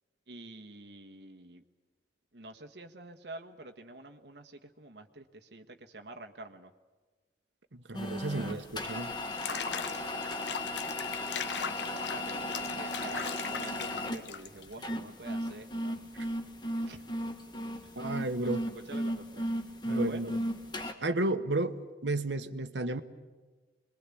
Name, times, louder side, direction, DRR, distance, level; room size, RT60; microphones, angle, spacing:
voice 1, 0.3-1.6 2.3-6.7 8.3-8.7 9.4-10.8 11.4-16.1 16.9-17.0 18.4-19.5 19.9-20.3, right 2 dB, 75° right, 4 dB, 1.4 m, -48 dB
voice 2, 7.7-9.1 18.0-18.6 19.9-20.4 21.0-23.0, right 2 dB, 90° right, 9 dB, 1.2 m, -32 dB
sound 1, 7.9-20.9, left 1 dB, 25° left, 1.6 m, -35 dB
Water / Bathtub (filling or washing), 9.2-14.7, left 7 dB, 80° left, 0.9 m, -39 dB
26.5 x 21.5 x 8.5 m, 1.3 s
head